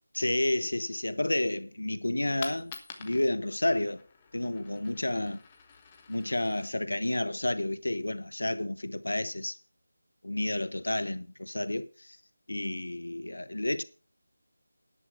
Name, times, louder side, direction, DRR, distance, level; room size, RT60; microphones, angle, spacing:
voice 1, 0.1-2.7 3.0-4.0 4.3-5.4 6.1-9.6 10.2-12.2 12.5-13.8, left 1 dB, 75° left, 1.1 m, -30 dB
Coin (dropping), 2.3-8.1, left 5 dB, 20° left, 1.3 m, -49 dB
11.0 x 7.4 x 6.1 m
figure-of-eight pair, 165°, 0 cm